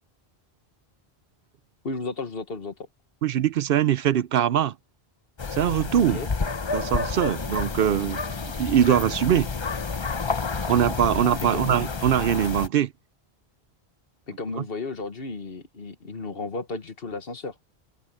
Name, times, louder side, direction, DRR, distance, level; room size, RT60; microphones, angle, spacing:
voice 1, 1.8-2.9 6.1-6.3 11.4-11.7 14.3-17.5, left 3 dB, 65° left, 1.6 m, -33 dB
voice 2, 3.2-4.7 5.6-6.2 6.7-8.2 8.6-9.5 10.7-12.9, right 10 dB, 70° right, 0.7 m, -22 dB
sound 1, 5.4-12.7, left 4 dB, 30° left, 0.7 m, -30 dB
open air
omnidirectional pair, 1.1 m